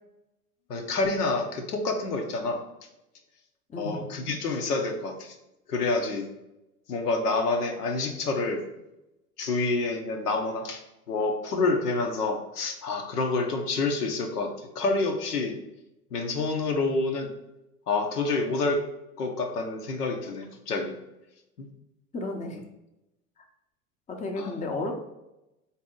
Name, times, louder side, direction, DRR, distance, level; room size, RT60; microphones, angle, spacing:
voice 1, 0.7-2.6 3.8-5.4 5.7-6.3 6.9-8.6 9.4-10.8 11.1-15.6 16.1-17.3 17.9-18.8 19.2-21.0 21.6-21.7 24.4-24.5, left 3 dB, 85° left, 3 dB, 0.8 m, -28 dB
voice 2, 3.7-4.1 22.1-22.6 23.4-23.5 24.1-25.0, left 2 dB, 15° left, 3 dB, 0.6 m, -33 dB
4.0 x 2.8 x 3.7 m, 0.92 s
hypercardioid pair, 85°, 45 cm